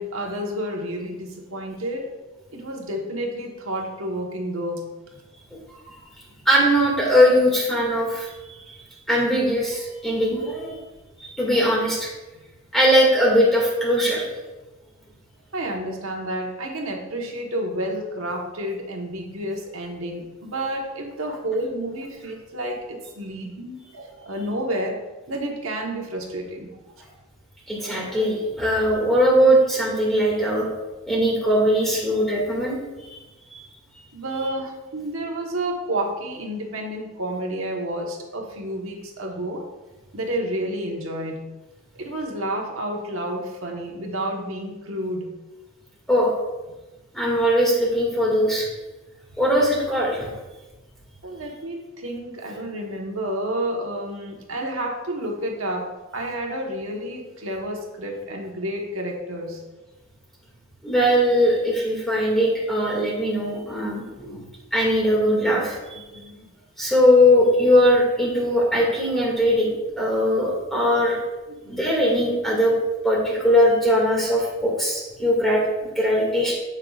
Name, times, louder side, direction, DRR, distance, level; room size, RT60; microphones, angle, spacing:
voice 1, 0.0-2.1 2.5-4.8 15.5-25.0 25.3-26.7 34.1-39.6 40.1-41.4 42.0-45.3 51.2-55.9 56.1-59.6 66.1-66.5 71.6-71.8, right 1 dB, 70° right, 0 dB, 1.3 m, -30 dB
voice 2, 6.5-8.8 9.1-10.7 11.2-12.1 12.7-14.2 27.7-30.7 31.1-32.8 33.1-33.2 33.5-33.7 46.1-46.3 47.1-48.7 49.4-50.3 60.8-64.4 64.7-66.2 66.8-71.2 71.7-72.7 73.0-76.5, equal, ahead, -4 dB, 2.2 m, -20 dB
15.0 x 5.8 x 2.5 m, 1.1 s
head